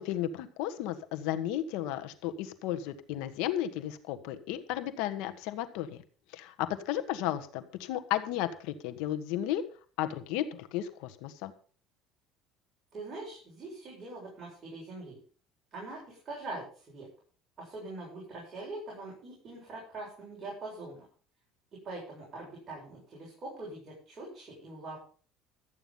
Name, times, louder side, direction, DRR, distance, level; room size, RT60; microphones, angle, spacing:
voice 1, 0.0-6.0 6.3-9.6 10.0-11.5, left 12 dB, 80° left, 9 dB, 1.5 m, -34 dB
voice 2, 12.9-15.2 15.7-17.1 17.6-21.0 21.8-25.0, right 2 dB, 30° right, -4 dB, 7.4 m, -43 dB
13.5 x 9.1 x 5.5 m, 0.41 s
cardioid pair, 130°, 0 cm